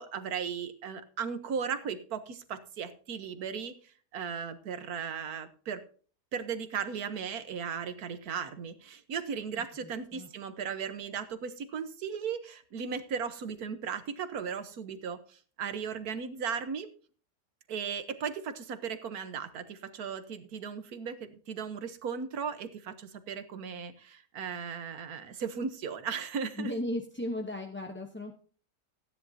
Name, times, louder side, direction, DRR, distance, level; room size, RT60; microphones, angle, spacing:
voice 1, 0.0-3.7 4.1-5.8 6.3-16.9 17.7-26.7, right 6 dB, 80° right, 11 dB, 1.6 m, -36 dB
voice 2, 9.8-10.3 26.6-28.3, left 1 dB, 10° left, 2 dB, 0.8 m, -36 dB
15.5 x 10.0 x 2.8 m, 0.41 s
omnidirectional pair, 1.6 m